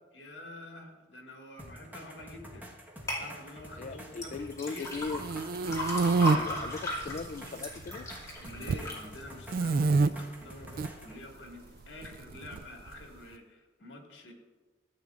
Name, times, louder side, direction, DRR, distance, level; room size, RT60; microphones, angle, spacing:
voice 1, 0.1-2.7 3.2-4.9 8.4-14.3, left 1 dB, 70° left, 1 dB, 2.0 m, -48 dB
sound 1, 1.6-11.2 12.5-12.6, equal, 10° right, 1.3 m, -48 dB
sound 2, 3.1-3.2 4.1-10.3 10.7-11.2 11.7-11.8, left 1 dB, 20° left, 2.4 m, -37 dB
voice 2, 3.8-5.2 6.2-8.1, left 4 dB, 45° left, 10 dB, 0.3 m, -38 dB
sound 3, 5.0-6.4 7.0-7.6 7.9-8.9 9.5-10.1 10.6-10.9 12.0-13.0, right 3 dB, 55° right, 0.3 m, -27 dB
14.5 x 8.5 x 2.5 m, 1.3 s
head